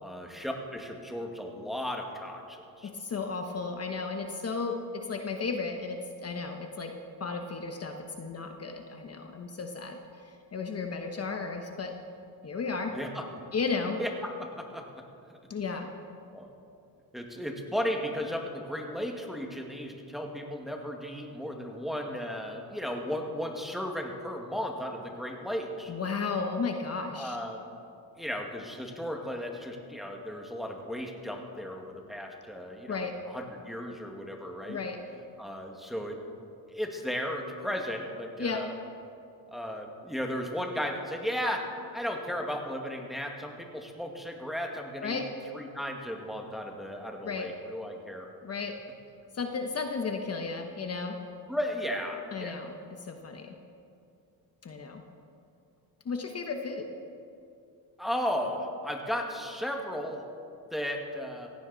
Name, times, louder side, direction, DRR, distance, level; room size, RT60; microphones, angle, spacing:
voice 1, 0.0-2.9 12.9-13.3 14.0-14.8 16.3-16.5 17.1-25.9 27.1-27.6 28.2-34.8 35.4-36.2 36.7-38.7 39.5-45.2 45.5-48.3 51.5-52.7 58.0-60.2 60.7-61.5, equal, ahead, 1 dB, 1.8 m, -35 dB
voice 2, 2.8-6.9 7.2-11.9 12.4-12.9 13.5-14.0 15.5-15.9 25.9-27.4 32.9-33.1 34.7-35.0 38.4-38.6 45.0-45.3 47.2-47.5 48.4-48.7 49.3-51.2 52.3-52.7 53.0-53.5 54.6-55.0 56.0-56.9, left 4 dB, 40° left, 4 dB, 1.2 m, -34 dB
16.5 x 16.0 x 4.1 m, 2.5 s
cardioid pair, 105°, 39 cm